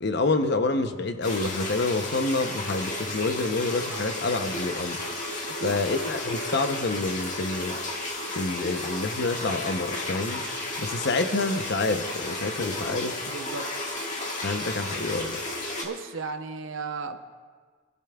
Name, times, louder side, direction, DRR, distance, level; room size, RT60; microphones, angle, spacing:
voice 1, 0.0-5.0 5.6-7.8 8.4-10.4 10.8-13.2 14.4-15.4, left 3 dB, 60° left, 8 dB, 0.7 m, -27 dB
sound 1, 1.2-15.8, left 2 dB, 40° left, 1.7 m, -33 dB
voice 2, 13.3-13.7 15.8-17.2, right 4 dB, 80° right, 7 dB, 0.8 m, -34 dB
26.0 x 12.0 x 2.3 m, 1.5 s
head